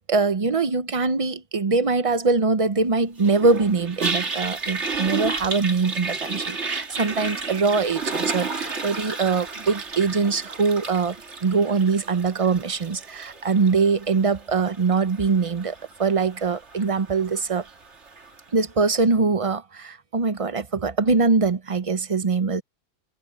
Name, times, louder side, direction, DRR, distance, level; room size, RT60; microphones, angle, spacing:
voice 1, 0.1-17.7 18.5-22.6, right 4 dB, 35° right, 0.8 m, -23 dB
Toilet flush, 3.2-18.4, right 4 dB, 75° right, 2.4 m, -33 dB
omnidirectional pair, 1.2 m